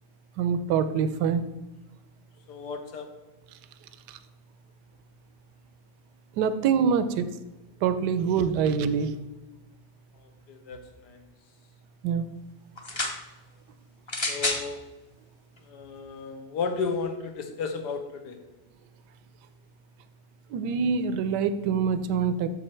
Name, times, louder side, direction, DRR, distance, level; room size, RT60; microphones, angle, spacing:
voice 1, 0.4-1.4 6.4-7.2 7.8-9.1 12.0-12.3 20.5-22.5, right 6 dB, 90° right, 11 dB, 1.2 m, -25 dB
voice 2, 2.5-3.1 10.2-11.2 14.3-14.8 15.7-18.4, left 4 dB, 85° left, 6 dB, 1.5 m, -34 dB
sound 1, 12.8-13.2 14.1-14.7 15.6-15.7, left 2 dB, 30° left, 0.5 m, -29 dB
7.7 x 6.4 x 4.4 m, 1.1 s
omnidirectional pair, 1.8 m